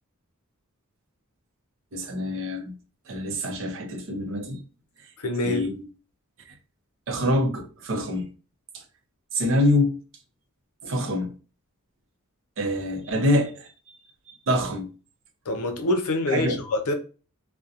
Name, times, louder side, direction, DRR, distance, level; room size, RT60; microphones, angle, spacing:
voice 1, 1.9-2.7 3.1-4.6 5.4-5.8 7.1-8.3 9.3-10.0 10.8-11.3 12.6-14.0 14.5-14.9 16.3-16.6, left 1 dB, 60° right, 0.6 m, -25 dB
voice 2, 5.2-5.6 15.5-16.9, left 2 dB, 75° left, 0.5 m, -25 dB
2.7 x 2.1 x 2.4 m
head